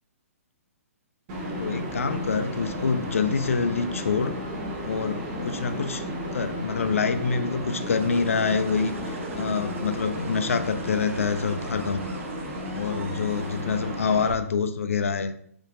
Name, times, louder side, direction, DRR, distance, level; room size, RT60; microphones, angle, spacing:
sound 1, 1.3-10.6, left 1 dB, ahead, 0.5 m, -42 dB
sound 2, 1.3-14.3, equal, 30° right, 1.0 m, -33 dB
voice 1, 1.6-4.4 4.8-6.1 6.3-12.0 12.7-15.3, left 5 dB, 60° left, 9 dB, 0.5 m, -26 dB
sound 3, 7.6-14.1, right 4 dB, 55° right, 0.6 m, -46 dB
5.6 x 2.9 x 2.7 m, 0.64 s
figure-of-eight pair, 125°, 8 cm